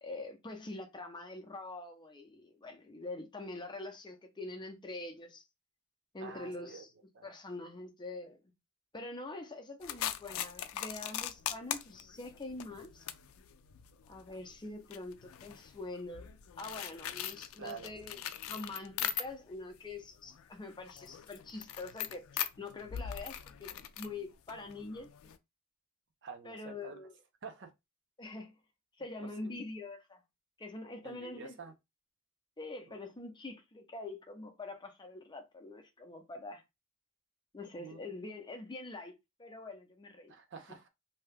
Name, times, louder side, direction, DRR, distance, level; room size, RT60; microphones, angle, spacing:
voice 1, 0.0-5.4 6.1-6.9 7.2-8.4 8.9-13.0 14.1-16.3 16.6-18.2 18.5-22.3 22.6-25.1 26.4-27.1 28.2-28.5 29.0-30.2 30.6-31.6 32.6-36.6 37.5-39.1 39.4-40.3, left 2 dB, 20° left, 0.6 m, -44 dB
voice 2, 6.2-6.8 7.1-7.3 17.6-18.3 26.2-26.6 26.8-27.0 27.4-27.7 29.4-29.6 31.0-31.7 32.9-33.0 37.8-38.1 40.3-40.9, right 5 dB, 60° right, 0.7 m, -48 dB
sound 1, 9.8-19.6 20.0-25.4, left 10 dB, 80° left, 0.4 m, -41 dB
2.8 x 2.3 x 3.3 m
head